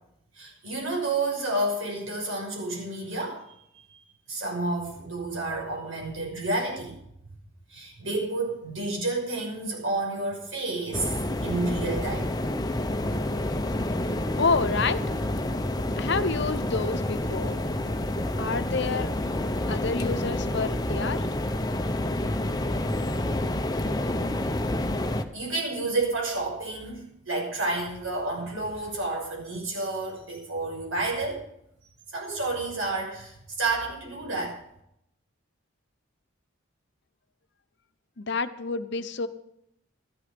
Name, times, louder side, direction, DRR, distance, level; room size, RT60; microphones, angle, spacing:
voice 1, 0.3-3.4 3.7-7.0 7.7-12.3 25.3-31.4 32.1-34.6, right 2 dB, 75° right, 0 dB, 6.1 m, -30 dB
sound 1, 10.9-25.2, left 1 dB, 20° left, 0.8 m, -28 dB
voice 2, 14.4-15.0 16.0-17.6 18.4-19.1 19.7-21.3 38.2-39.3, left 4 dB, 55° left, 11 dB, 0.9 m, -28 dB
13.5 x 11.5 x 5.2 m, 0.75 s
head